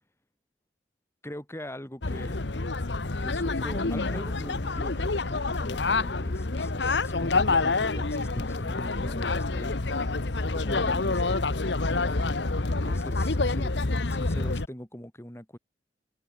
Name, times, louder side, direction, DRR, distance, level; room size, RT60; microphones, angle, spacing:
voice 1, 1.2-2.4 3.2-9.8 10.4-11.5 11.9-12.4 12.8-13.8 14.1-15.6, equal, 15° left, 3.8 m, -42 dB
sound 1, 2.0-14.7, left 3 dB, 75° left, 1.2 m, -27 dB
open air
head